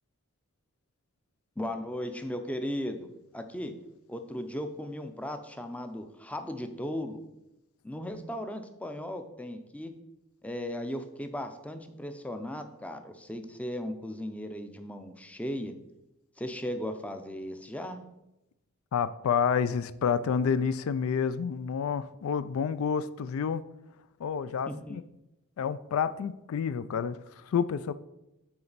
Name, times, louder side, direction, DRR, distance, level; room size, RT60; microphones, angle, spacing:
voice 1, 1.6-3.1 3.3-3.7 4.1-7.2 7.8-10.0 10.4-15.7 16.4-18.0 24.7-25.0, left 1 dB, 5° left, 7 dB, 0.5 m, -36 dB
voice 2, 18.9-23.6 24.2-25.0 25.6-27.9, left 7 dB, 75° left, 14 dB, 0.3 m, -29 dB
8.7 x 4.3 x 4.0 m, 0.92 s
head